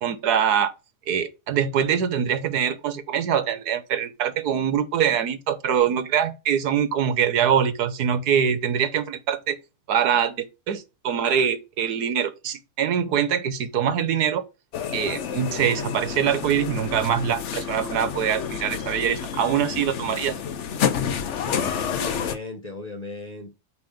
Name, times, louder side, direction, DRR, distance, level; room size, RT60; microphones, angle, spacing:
voice 1, 0.0-0.7 1.1-9.6 9.9-14.4 14.9-20.4, right 8 dB, 75° right, 1.4 m, -24 dB
sound 1, 14.7-22.4, left 8 dB, 55° left, 0.9 m, -29 dB
voice 2, 21.4-23.6, left 2 dB, 30° left, 0.8 m, -36 dB
9.2 x 3.5 x 5.0 m
omnidirectional pair, 1.7 m